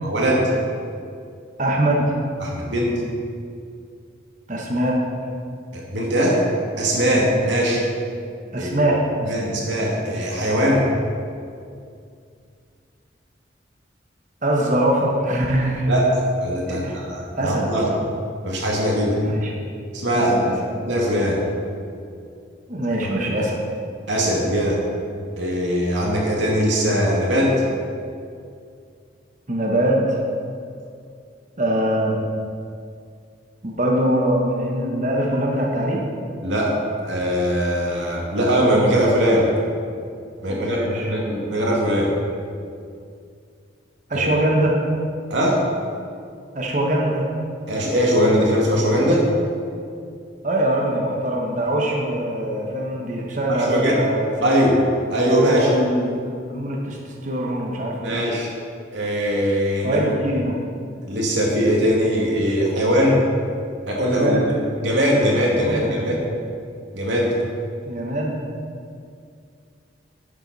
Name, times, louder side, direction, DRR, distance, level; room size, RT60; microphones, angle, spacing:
voice 1, 0.0-0.5 2.4-3.0 5.7-6.4 6.8-7.8 8.6-8.9 9.2-10.9 15.9-17.9 18.4-19.1 19.9-21.4 23.2-23.4 24.1-24.8 25.4-27.6 36.4-36.8 37.0-39.5 40.4-42.1 44.1-44.3 45.3-45.6 47.7-49.3 53.5-53.9 54.4-54.8 55.1-55.7 58.0-58.5 58.9-60.0 61.0-63.2 63.9-64.5 64.8-66.3 66.9-67.3, equal, 75° right, -3 dB, 2.3 m, -21 dB
voice 2, 1.6-2.1 4.5-5.0 8.5-9.6 14.4-15.9 16.7-16.9 17.4-17.8 19.2-19.5 20.1-20.5 22.7-23.6 29.5-30.2 31.6-32.2 33.6-36.0 40.5-41.1 44.1-44.8 46.5-47.3 50.4-54.6 55.1-56.2 56.5-58.2 59.8-60.6 64.2-64.5 65.7-66.2 67.9-68.3, right 1 dB, 40° right, -1 dB, 1.2 m, -23 dB
11.0 x 8.0 x 4.2 m, 2.4 s
head